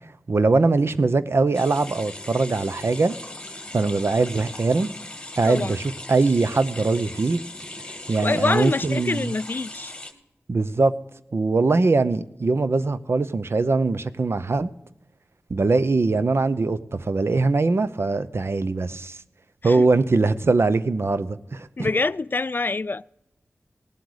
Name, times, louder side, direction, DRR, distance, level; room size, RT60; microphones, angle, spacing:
voice 1, 0.3-3.1 3.7-4.9 5.4-7.4 8.1-9.4 10.5-10.9 11.3-14.7 15.5-19.2 19.6-21.9, right 3 dB, 60° right, 0.6 m, -22 dB
sound 1, 1.5-10.1, left 2 dB, 20° left, 2.0 m, -39 dB
voice 2, 8.2-9.9 19.6-19.8 21.8-23.0, left 3 dB, 45° left, 0.3 m, -25 dB
18.0 x 7.9 x 4.9 m
cardioid pair, 40°, 5 cm